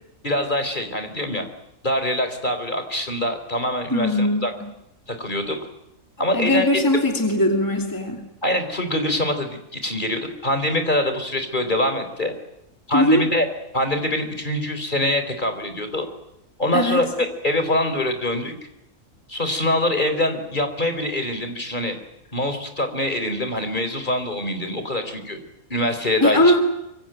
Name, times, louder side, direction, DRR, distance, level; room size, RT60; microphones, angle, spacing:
voice 1, 0.2-1.5 1.8-4.5 5.1-5.6 6.2-6.6 8.4-12.3 12.9-13.5 13.7-16.1 16.6-18.5 19.3-22.0 22.3-25.4 25.7-26.5, left 1 dB, 35° left, 8 dB, 4.1 m, -24 dB
voice 2, 3.9-4.7 6.3-8.3 12.9-13.3 16.7-17.1 26.2-26.7, left 1 dB, 15° left, 3 dB, 2.8 m, -20 dB
25.5 x 24.0 x 9.0 m, 0.86 s
omnidirectional pair, 1.4 m